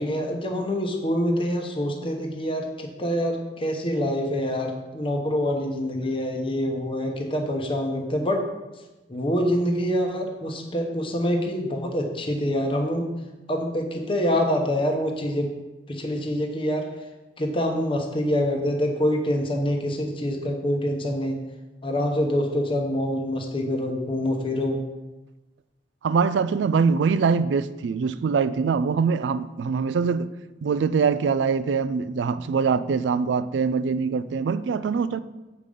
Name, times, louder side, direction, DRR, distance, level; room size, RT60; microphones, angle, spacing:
voice 1, 0.0-8.4 9.1-13.1 13.5-15.5 15.9-16.9 17.4-21.4 21.8-24.8, equal, 30° left, 0.9 m, -25 dB
voice 2, 26.0-30.3 30.6-35.2, right 5 dB, 90° right, 0.3 m, -23 dB
7.5 x 5.0 x 5.3 m
head